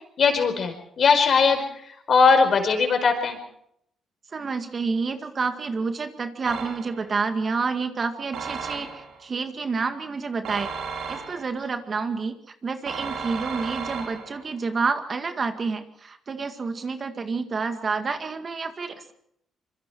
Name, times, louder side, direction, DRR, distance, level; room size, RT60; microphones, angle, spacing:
voice 1, 0.2-3.4, left 5 dB, 55° left, 6 dB, 4.9 m, -20 dB
voice 2, 4.3-10.7 11.1-12.4 12.6-19.1, right 4 dB, 40° right, 7 dB, 2.0 m, -29 dB
sound 1, 6.5-7.1 8.3-9.2 10.4-11.6 12.9-14.5, right 5 dB, 80° right, 4.6 m, -34 dB
25.5 x 23.0 x 4.7 m, 0.72 s
cardioid pair, 90°, 0 cm